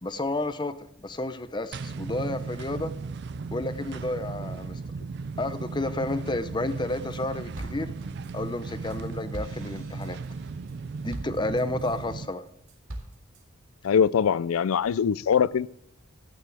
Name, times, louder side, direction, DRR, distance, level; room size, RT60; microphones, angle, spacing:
voice 1, 0.0-2.9 3.5-4.8 5.4-7.9 8.3-10.2 11.0-12.5, left 2 dB, 20° left, 11 dB, 0.7 m, -31 dB
sound 1, 1.7-12.3, right 4 dB, 50° right, 0.4 m, -36 dB
sound 2, 6.7-7.2 7.5-12.1 12.5-13.4, right 1 dB, 80° right, 2.2 m, -43 dB
voice 2, 13.8-15.7, left 7 dB, 90° left, 21 dB, 0.4 m, -22 dB
13.5 x 9.3 x 3.4 m, 0.78 s
head